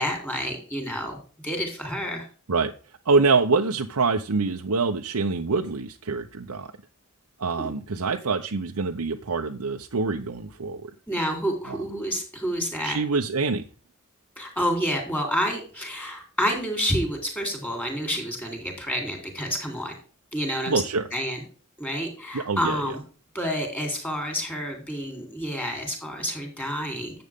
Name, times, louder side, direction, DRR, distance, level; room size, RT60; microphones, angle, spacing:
voice 1, 0.0-2.3 7.6-7.7 11.1-13.0 14.4-19.9 20.3-20.8 21.1-21.4 21.8-23.0 23.3-27.2, equal, 10° left, 3 dB, 3.5 m, -29 dB
voice 2, 3.1-6.7 7.4-10.9 11.7-11.8 12.8-13.7 20.7-21.0 22.3-23.0, right 4 dB, 85° right, 3 dB, 0.8 m, -25 dB
10.5 x 7.8 x 3.6 m, 0.38 s
head